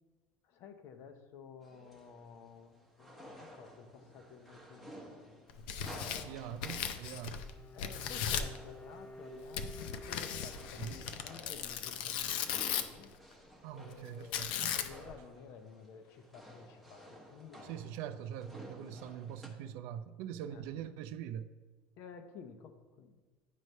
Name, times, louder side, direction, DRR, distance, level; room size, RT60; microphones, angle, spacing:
voice 1, 0.4-5.5 5.9-6.4 7.7-12.4 12.6-13.1 13.7-18.2 18.8-19.2 20.5-20.7 22.0-23.2, left 6 dB, 55° left, 8 dB, 0.8 m, -53 dB
sound 1, 1.6-19.5, equal, ahead, 0.9 m, -55 dB
Tearing, 5.5-7.5 7.8-8.6 9.5-13.0 14.3-15.1, left 8 dB, 85° left, 0.5 m, -37 dB
voice 2, 6.2-7.5 10.8-11.0 13.6-14.8 17.6-21.5, right 9 dB, 70° right, 11 dB, 0.4 m, -43 dB
Bowed string instrument, 7.2-11.6, left 1 dB, 15° left, 0.5 m, -52 dB
9.2 x 3.2 x 5.4 m, 1.3 s
cardioid pair, 140°, 5 cm